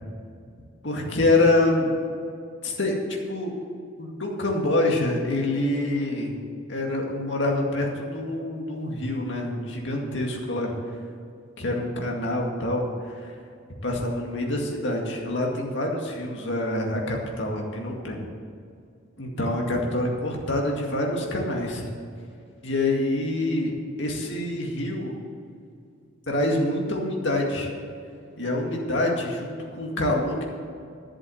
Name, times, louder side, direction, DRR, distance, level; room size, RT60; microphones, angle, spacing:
voice 1, 0.8-1.9 2.6-3.0 3.3-3.5 4.0-6.3 6.7-10.7 11.6-13.3 13.8-18.2 19.2-21.8 22.6-23.7 24.0-25.2 26.3-27.7 28.4-30.4, left 2 dB, 65° left, 0 dB, 2.1 m, -26 dB
11.0 x 7.5 x 8.0 m, 2.3 s
head